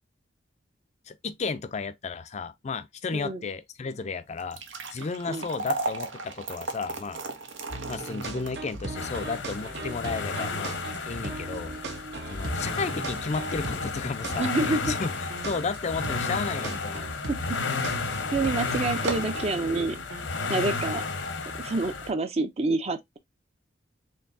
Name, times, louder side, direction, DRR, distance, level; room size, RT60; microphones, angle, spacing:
voice 1, 1.1-4.6 4.9-7.2 7.9-10.8 11.0-11.7 12.3-15.1 15.4-17.1, left 4 dB, 35° left, 0.4 m, -33 dB
voice 2, 3.1-3.5 5.3-5.4 11.6-11.7 14.4-15.0 17.3-17.4 18.3-20.0 20.5-21.0 21.6-23.2, right 3 dB, 35° right, 0.5 m, -28 dB
sound 1, 4.3-16.6 17.0-17.1 17.8-18.0 18.3-18.4 18.9-19.4, right 3 dB, 90° right, 0.9 m, -38 dB
sound 2, 7.7-20.2, right 2 dB, 65° right, 0.9 m, -38 dB
sound 3, 8.9-22.1, left 4 dB, 85° left, 0.9 m, -32 dB
4.5 x 3.2 x 2.6 m
head